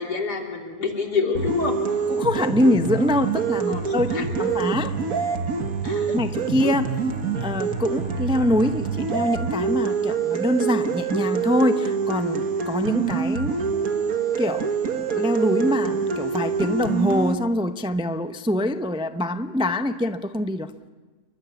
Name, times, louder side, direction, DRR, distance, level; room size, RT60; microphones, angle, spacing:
voice 1, 0.0-1.8 3.7-4.6 5.8-6.2, left 5 dB, 90° left, 2 dB, 3.8 m, -27 dB
sound 1, 1.3-17.3, right 5 dB, 60° right, 1.9 m, -26 dB
voice 2, 2.1-4.9 6.1-6.9 7.4-14.1 14.4-14.7 15.0-20.7, left 1 dB, 5° right, 9 dB, 0.4 m, -24 dB
30.0 x 23.5 x 7.1 m, 1.3 s
omnidirectional pair, 1.7 m